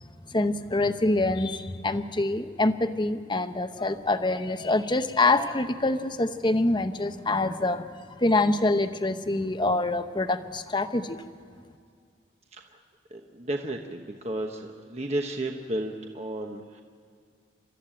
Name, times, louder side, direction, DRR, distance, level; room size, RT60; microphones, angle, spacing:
voice 1, 0.3-7.9 8.2-11.2, left 2 dB, 25° left, 9 dB, 0.8 m, -25 dB
voice 2, 13.1-16.8, right 1 dB, 35° right, 3 dB, 1.1 m, -33 dB
28.5 x 14.0 x 8.9 m, 2.2 s
head